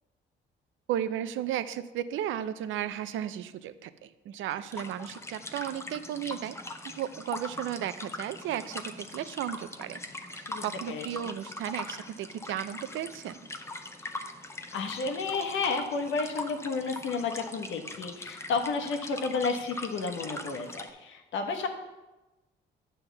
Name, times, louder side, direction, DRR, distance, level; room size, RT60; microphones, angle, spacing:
voice 1, 0.9-6.6 7.0-10.0 10.3-13.4, right 10 dB, 80° right, 13 dB, 0.5 m, -34 dB
sound 1, 4.7-20.9, left 2 dB, 15° left, 0.7 m, -41 dB
voice 2, 10.5-11.3 14.7-21.7, left 4 dB, 75° left, 5 dB, 1.1 m, -32 dB
9.1 x 3.5 x 6.8 m, 1.1 s
cardioid pair, 90°, 20 cm